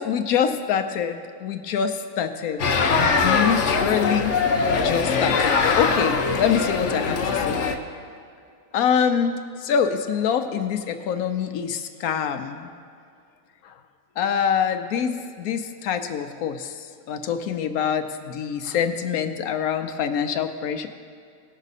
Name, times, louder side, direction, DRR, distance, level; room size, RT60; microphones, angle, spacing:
voice 1, 0.0-2.6 2.9-4.4 4.8-7.6 8.7-9.3 9.6-12.7 13.6-13.7 14.2-20.9, left 7 dB, 85° left, 7 dB, 1.1 m, -25 dB
sound 1, 2.6-7.8, left 4 dB, 60° left, 1.0 m, -22 dB
18.5 x 6.3 x 4.1 m, 2.3 s
omnidirectional pair, 1.5 m